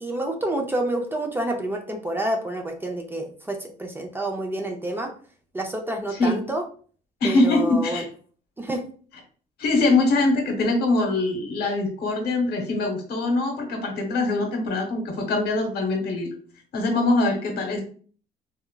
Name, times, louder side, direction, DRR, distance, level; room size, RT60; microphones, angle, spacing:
voice 1, 0.0-5.1 5.5-6.6 7.2-8.0 8.6-8.8, right 1 dB, 15° right, 3 dB, 0.4 m, -28 dB
voice 2, 7.2-8.1 9.6-16.3 16.7-17.8, left 2 dB, 70° left, 2 dB, 1.0 m, -23 dB
3.2 x 2.1 x 2.2 m, 0.43 s
cardioid pair, 110°, 17 cm